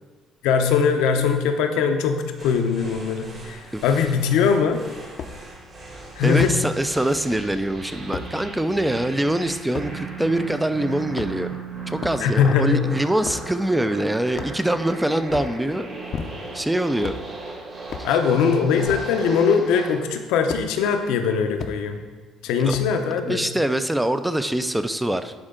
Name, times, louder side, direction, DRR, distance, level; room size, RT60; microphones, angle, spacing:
voice 1, 0.4-4.8 6.2-6.5 12.2-12.8 18.0-22.0 22.4-23.4, left 6 dB, 90° left, 6 dB, 0.7 m, -21 dB
sound 1, 2.4-20.1, right 4 dB, 40° right, 1.9 m, -37 dB
sound 2, 5.2-5.4 6.4-6.6 8.1-8.3 9.7-9.9 11.0-11.5 12.0-12.2 13.2-13.5 14.3-14.8 15.2-15.6 16.1-16.6 17.0-17.3 17.9-18.1 18.8-19.1 20.5-20.7 21.6-21.8 22.7-23.0, left 6 dB, 55° left, 0.5 m, -33 dB
voice 2, 5.9-11.5 11.9-15.9 16.5-17.1 22.6-22.7 23.2-25.3, right 1 dB, 5° right, 10 dB, 0.4 m, -24 dB
10.5 x 4.4 x 3.8 m, 1.4 s
cardioid pair, 115°, 0 cm